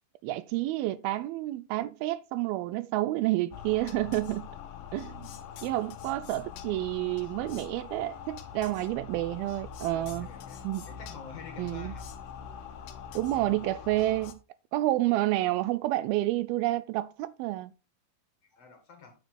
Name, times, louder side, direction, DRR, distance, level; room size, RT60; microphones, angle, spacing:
voice 1, 0.2-4.5 4.9-5.3 5.6-10.3 10.6-10.8 11.6-11.9 13.2-14.4 14.7-17.7, right 16 dB, 80° right, 2.3 m, -29 dB
sound 1, 3.5-14.3, left 7 dB, 70° left, 2.4 m, -43 dB
voice 2, 8.6-9.0 9.8-12.1 18.4-19.1, left 5 dB, 55° left, 2.1 m, -49 dB
9.0 x 7.1 x 4.2 m
omnidirectional pair, 4.4 m